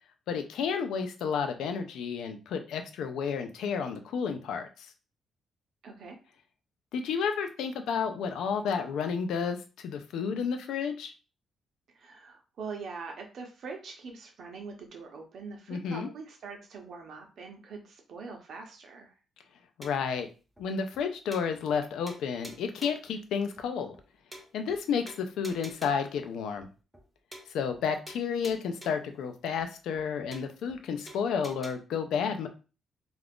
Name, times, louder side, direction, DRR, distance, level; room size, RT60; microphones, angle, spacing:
voice 1, 0.3-4.9 6.9-9.6 9.8-11.1 15.7-16.1 19.8-20.3 20.6-23.9 24.5-26.7 27.5-32.5, left 6 dB, 90° left, 7 dB, 0.4 m, -31 dB
voice 2, 5.8-6.2 11.9-19.1, right 4 dB, 60° right, 2 dB, 0.7 m, -43 dB
sound 1, 19.8-20.2 20.6-20.7 20.9-21.0 21.3-21.8 22.1-23.1 23.6-23.7 23.9-24.0 24.3-24.8 25.1-26.1 26.6-26.7 26.9-27.1 27.3-27.8 28.1-29.1 29.6-29.7 29.9-30.0 30.3-30.8 31.1-31.7, right 1 dB, 5° right, 0.5 m, -48 dB
2.4 x 2.4 x 3.5 m, 0.34 s
cardioid pair, 140°, 0 cm